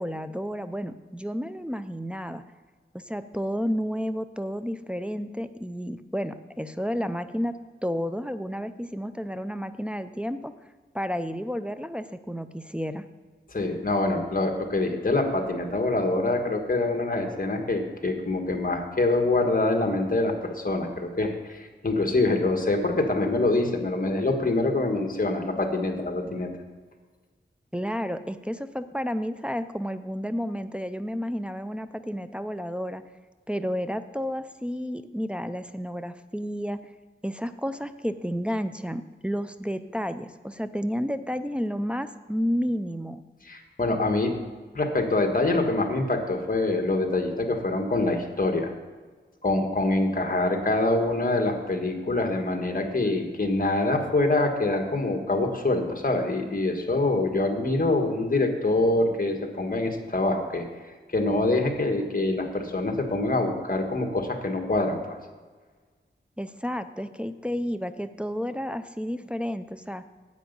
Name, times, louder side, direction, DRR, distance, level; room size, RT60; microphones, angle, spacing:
voice 1, 0.0-2.4 2.9-7.6 7.8-10.5 10.9-13.1 27.7-33.0 33.5-36.8 37.2-43.2 66.4-70.0, equal, 5° right, 9 dB, 0.5 m, -31 dB
voice 2, 13.5-26.5 43.4-44.3 44.7-48.7 49.4-60.6 61.1-65.2, left 2 dB, 45° left, 4 dB, 1.5 m, -25 dB
10.0 x 8.1 x 5.3 m, 1.4 s
wide cardioid pair, 80°, 20 cm